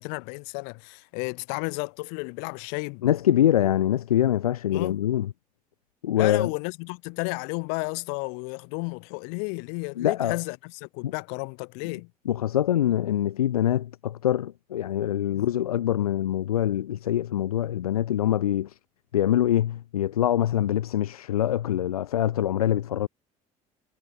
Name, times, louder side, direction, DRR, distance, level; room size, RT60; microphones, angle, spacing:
voice 1, 0.0-3.1 4.7-5.0 6.2-12.1 15.3-15.5, left 40 dB or more, 70° left, 6.5 m, -33 dB
voice 2, 3.0-5.3 6.0-6.5 10.0-10.4 11.0-11.1 11.9-12.0 12.3-18.8 19.1-23.1, left 11 dB, 90° left, 0.5 m, -24 dB
hypercardioid pair, 60°, 18 cm